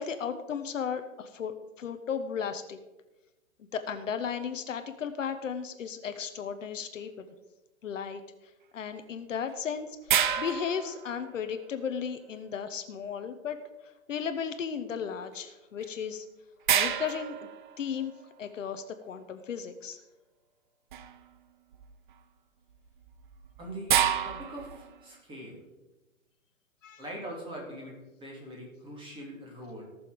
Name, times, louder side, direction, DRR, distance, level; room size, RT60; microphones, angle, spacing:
voice 1, 0.0-2.8 3.7-7.3 7.8-8.2 8.7-13.6 14.1-16.2 16.7-17.5 17.8-18.1 18.4-20.0 26.8-27.0, left 7 dB, 65° left, 8 dB, 1.2 m, -35 dB
sound 1, 10.1-11.7 15.8-15.9 16.7-18.3 20.9-21.3 21.7-22.1 23.0-25.0, right 9 dB, 35° right, 0.6 m, -29 dB
voice 2, 23.6-24.0 24.2-25.6 27.0-29.8, right 1 dB, 10° right, -2 dB, 3.1 m, -42 dB
17.5 x 6.9 x 5.1 m, 1.1 s
hypercardioid pair, 150°, 41 cm